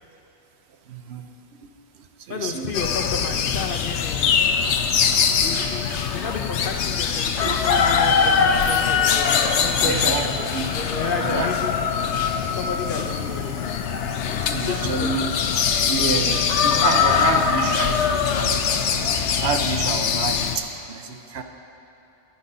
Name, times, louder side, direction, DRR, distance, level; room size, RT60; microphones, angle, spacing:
voice 1, 0.9-1.3 1.6-2.7 6.1-6.2 7.4-7.6 9.8-10.7 11.2-11.5 14.5-15.3 15.9-18.9 19.4-21.4, right 5 dB, 70° right, 6 dB, 1.0 m, -29 dB
voice 2, 2.3-4.4 5.4-10.4 10.7-11.8 12.5-13.5 14.3-15.3, left 4 dB, 55° left, 3 dB, 0.9 m, -31 dB
sound 1, 2.7-20.6, left 6 dB, 85° left, 1.0 m, -22 dB
10.5 x 10.5 x 5.4 m, 3.0 s
omnidirectional pair, 1.1 m